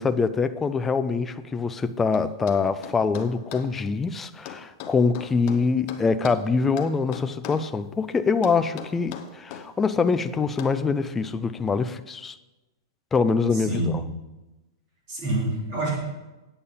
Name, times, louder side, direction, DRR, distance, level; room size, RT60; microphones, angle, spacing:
voice 1, 0.0-12.4 13.1-14.0, left 4 dB, 10° left, 0.3 m, -24 dB
sound 1, 2.1-3.7 4.5-6.4 6.8-7.7 8.4-9.7 10.6-10.8, left 9 dB, 30° left, 0.8 m, -39 dB
voice 2, 13.5-14.0 15.1-16.0, right 1 dB, 35° right, 3.8 m, -27 dB
8.6 x 8.5 x 5.5 m
supercardioid pair, 175°, 2 cm